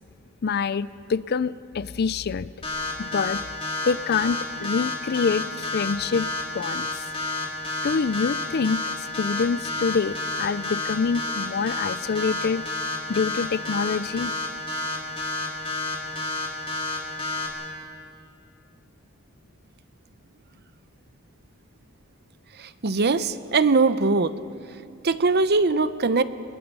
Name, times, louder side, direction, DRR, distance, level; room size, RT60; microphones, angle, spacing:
voice 1, 0.4-2.5 3.0-3.4 3.9-7.1 7.8-12.6 13.1-14.3, left 5 dB, 50° left, 17 dB, 0.5 m, -26 dB
sound 1, 2.6-17.5, left 2 dB, 25° left, 4.3 m, -29 dB
voice 2, 22.8-24.3 25.0-26.2, right 3 dB, 50° right, 13 dB, 0.8 m, -21 dB
29.5 x 20.5 x 5.5 m, 2.5 s
head